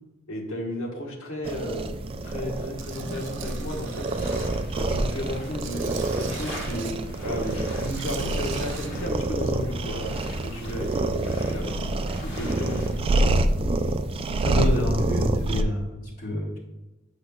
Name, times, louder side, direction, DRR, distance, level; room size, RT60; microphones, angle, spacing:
voice 1, 0.3-1.9 2.2-4.3 4.7-6.9 7.2-11.9 12.2-13.1, left 1 dB, 85° left, -1 dB, 1.3 m, -33 dB
sound 1, 1.4-15.6, right 2 dB, 30° right, 0.3 m, -27 dB
Tools, 2.8-4.5 5.0-6.9 7.7-8.9, right 8 dB, 65° right, 0.6 m, -42 dB
sound 2, 3.4-13.0, left 1 dB, 60° left, 1.6 m, -45 dB
voice 2, 14.4-16.6, left 1 dB, 45° left, -5 dB, 1.4 m, -28 dB
7.9 x 5.1 x 2.3 m, 1.1 s
head